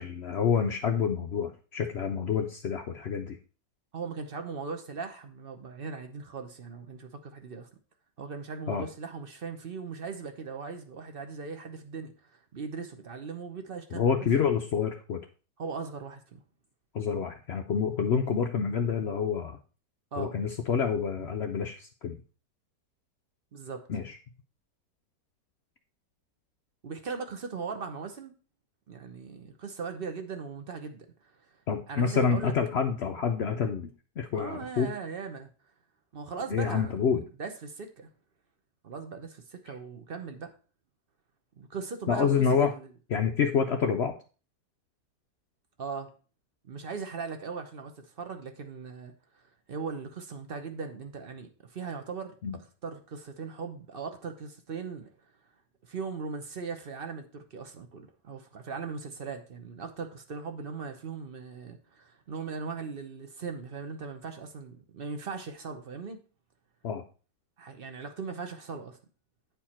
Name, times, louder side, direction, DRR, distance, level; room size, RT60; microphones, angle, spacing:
voice 1, 0.0-3.4 8.7-8.9 13.9-15.2 16.9-19.6 20.2-22.1 23.9-24.2 31.7-33.9 34.2-34.9 36.5-37.2 42.1-42.7 43.1-44.1 52.4-52.6 66.8-67.0, left 6 dB, 85° left, 4 dB, 0.5 m, -28 dB
voice 2, 3.9-7.7 8.2-14.0 15.6-16.4 20.1-20.4 21.2-21.3 23.5-23.8 26.8-28.3 28.9-31.4 31.9-32.5 34.3-35.5 36.1-37.0 37.4-38.1 38.8-40.5 41.6-42.9 45.8-46.1 46.6-55.3 55.8-66.2 67.6-69.0, right 5 dB, 45° right, 6 dB, 0.7 m, -39 dB
9.2 x 4.7 x 4.3 m, 0.36 s
omnidirectional pair, 1.9 m